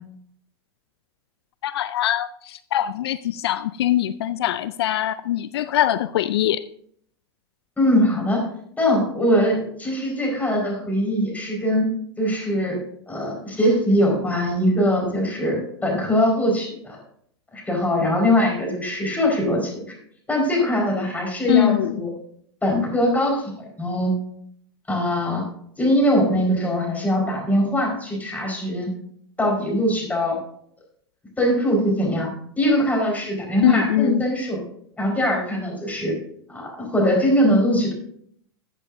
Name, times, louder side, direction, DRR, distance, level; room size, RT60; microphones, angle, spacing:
voice 1, 1.6-6.6 21.5-22.0 33.6-34.2, left 12 dB, 75° left, 0.4 m, -22 dB
voice 2, 7.8-8.5 8.8-11.9 12.2-12.8 13.1-17.0 17.5-20.0 20.3-22.1 22.6-23.5 23.8-24.1 24.9-25.4 25.8-28.9 29.4-30.4 31.4-32.3 32.6-34.6 35.0-36.2 36.5-37.9, equal, 10° left, 4.8 m, -21 dB
14.0 x 8.2 x 2.7 m
hypercardioid pair, 100°, 13 cm